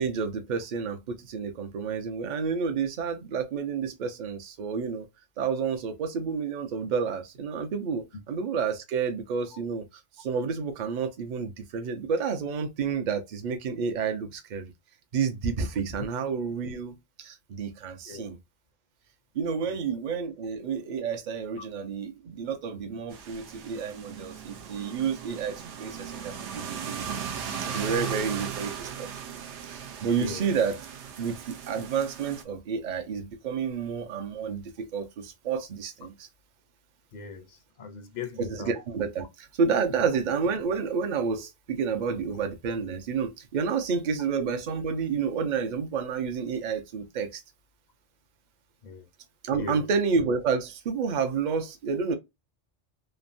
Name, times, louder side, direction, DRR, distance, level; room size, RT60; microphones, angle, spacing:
voice 1, 0.0-5.1 5.4-9.8 10.2-14.7 15.1-18.4 19.3-27.3 27.6-29.1 29.7-30.8 31.2-36.3 38.4-47.4 49.4-52.1, right 5 dB, 50° right, 0.6 m, -30 dB
sound 1, 23.1-32.4, right 7 dB, 80° right, 0.9 m, -37 dB
voice 2, 30.2-30.5 37.1-38.7 48.8-49.1 49.5-49.9, left 5 dB, 55° left, 0.5 m, -39 dB
3.2 x 2.0 x 2.5 m
omnidirectional pair, 1.2 m